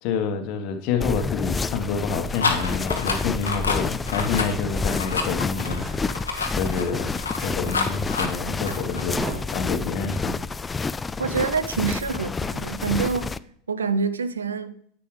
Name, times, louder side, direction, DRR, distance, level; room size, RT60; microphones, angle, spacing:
voice 1, 0.0-6.1 6.5-7.1 7.4-9.2 9.5-10.3, left 5 dB, 50° left, 1.2 m, -28 dB
sound 1, 1.0-13.4, left 4 dB, 20° left, 0.3 m, -29 dB
sound 2, 2.4-9.0, left 4 dB, 80° left, 1.0 m, -28 dB
sound 3, 3.9-10.2, equal, 5° right, 1.8 m, -40 dB
voice 2, 11.2-13.3 13.7-14.7, right 5 dB, 75° right, 0.6 m, -26 dB
10.0 x 8.4 x 3.1 m
figure-of-eight pair, 75°, 0 cm